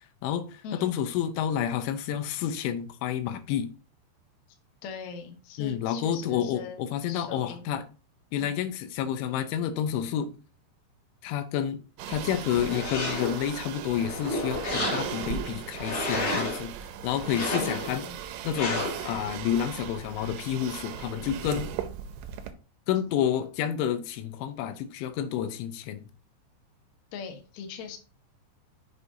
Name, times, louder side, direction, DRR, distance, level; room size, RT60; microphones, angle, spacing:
voice 1, 0.0-3.7 5.6-7.8 8.3-10.4 11.2-11.8 12.1-16.7 17.0-18.1 18.4-21.7 22.9-26.1, left 9 dB, 90° left, 10 dB, 3.2 m, -29 dB
voice 2, 4.8-6.8 7.1-7.6 8.4-8.5 17.6-18.1 27.1-28.0, left 6 dB, 70° left, 4 dB, 1.7 m, -40 dB
sound 1, 12.0-22.5, right 9 dB, 90° right, 3.2 m, -38 dB
sound 2, 12.6-13.5 14.0-15.3 15.7-16.6 17.2-18.0 18.5-19.1, left 1 dB, 40° left, 3.6 m, -31 dB
7.9 x 6.2 x 2.7 m, 0.35 s
omnidirectional pair, 5.3 m